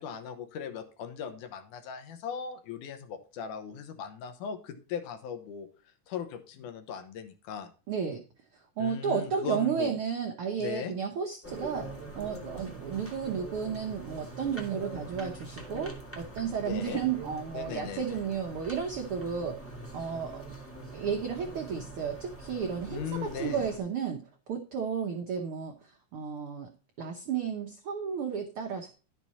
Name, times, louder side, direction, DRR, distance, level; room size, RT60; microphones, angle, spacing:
voice 1, 0.0-5.7 6.1-7.7 8.8-10.0 10.6-10.9 16.6-17.0 17.5-18.2 22.9-23.7, left 7 dB, 75° left, 7 dB, 2.5 m, -38 dB
voice 2, 7.9-8.2 8.8-11.9 12.1-19.6 19.9-20.4 20.9-26.7 27.0-28.9, right 7 dB, 75° right, 3 dB, 1.2 m, -33 dB
sound 1, 11.4-23.8, right 2 dB, 10° left, 0.7 m, -44 dB
11.0 x 6.1 x 4.1 m, 0.35 s
omnidirectional pair, 3.7 m